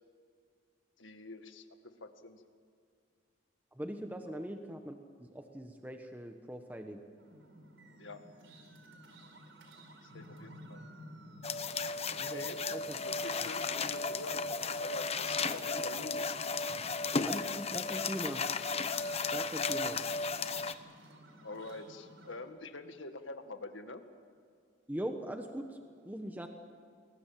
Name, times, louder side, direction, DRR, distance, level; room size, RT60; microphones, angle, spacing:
voice 1, 1.0-1.6 2.0-2.4 4.3-4.4 8.0-8.2 10.1-10.8 11.8-11.9 12.3-12.6 13.0-16.4 21.4-24.0, left 2 dB, 80° left, 7 dB, 2.0 m, -46 dB
voice 2, 3.7-5.0 5.3-7.0 12.2-12.5 12.7-13.0 17.2-18.5 19.3-20.0 24.9-25.7 26.0-26.5, equal, 10° right, 5 dB, 1.2 m, -41 dB
sound 1, 7.2-22.4, right 1 dB, 90° right, 4.4 m, -55 dB
sound 2, 11.4-20.7, left 4 dB, 35° left, 1.0 m, -34 dB
29.5 x 21.5 x 7.6 m, 2.2 s
head